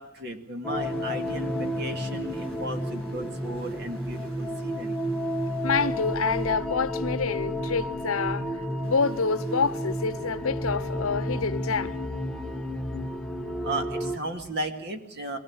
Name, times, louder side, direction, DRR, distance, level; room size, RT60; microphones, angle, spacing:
voice 1, 0.0-5.0 13.6-15.4, right 1 dB, 50° right, 2.2 m, -35 dB
sound 1, 0.6-14.2, equal, 5° left, 1.2 m, -31 dB
sound 2, 0.8-12.0, right 1 dB, 75° right, 4.3 m, -52 dB
voice 2, 5.6-8.5 8.8-11.9, left 5 dB, 80° left, 0.8 m, -27 dB
22.5 x 19.5 x 8.7 m
head